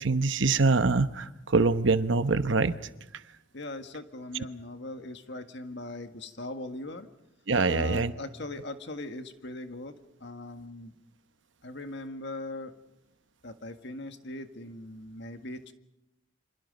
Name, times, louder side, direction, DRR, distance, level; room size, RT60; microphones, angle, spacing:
voice 1, 0.0-2.8 7.5-8.1, right 3 dB, 65° right, 11 dB, 1.0 m, -24 dB
voice 2, 3.5-7.1 7.7-10.9 11.6-12.7 13.4-15.7, left 2 dB, 60° left, 7 dB, 1.7 m, -40 dB
28.0 x 25.5 x 5.3 m, 0.89 s
head